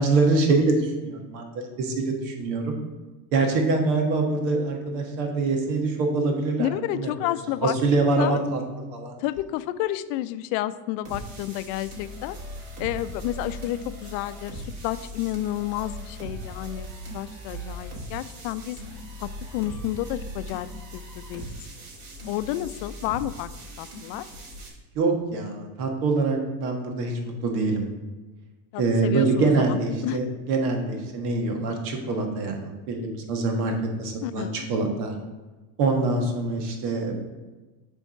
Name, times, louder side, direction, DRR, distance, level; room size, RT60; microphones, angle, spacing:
voice 1, 0.0-2.7 3.3-7.1 7.6-8.6 8.9-9.2 24.9-27.1 27.4-27.9 28.8-33.7 34.0-35.1 35.8-37.2, right 3 dB, 85° right, 3 dB, 1.5 m, -24 dB
voice 2, 6.6-7.8 8.1-8.4 9.2-12.4 12.8-16.9 17.1-18.8 19.2-20.7 20.9-21.5 22.3-23.5 23.8-24.3 28.7-29.8 30.0-30.2 34.2-34.7, left 14 dB, 70° left, 14 dB, 0.5 m, -30 dB
sound 1, 11.0-24.7, equal, 70° right, 2.3 m, -39 dB
7.1 x 3.5 x 5.7 m, 1.2 s
supercardioid pair, 115°, 47 cm